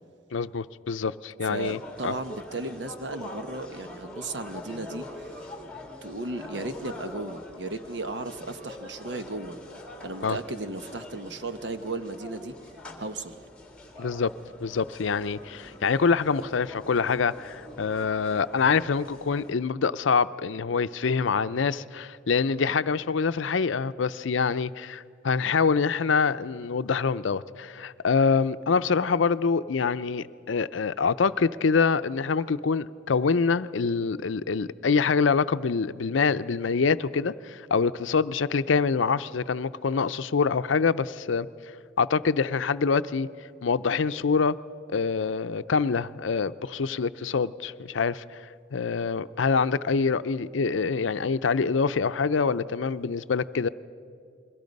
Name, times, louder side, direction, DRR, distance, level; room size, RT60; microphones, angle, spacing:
voice 1, 0.3-2.1 10.2-10.4 14.0-14.3 14.6-41.5 42.0-43.3 43.6-44.6 44.9-48.2 48.7-53.7, left 5 dB, 85° left, 0.6 m, -25 dB
voice 2, 1.4-5.3 6.0-9.6 10.0-12.5 13.0-13.4, right 2 dB, 65° right, 1.0 m, -35 dB
sound 1, 1.6-19.5, left 1 dB, 5° left, 2.2 m, -44 dB
29.0 x 22.0 x 5.3 m
head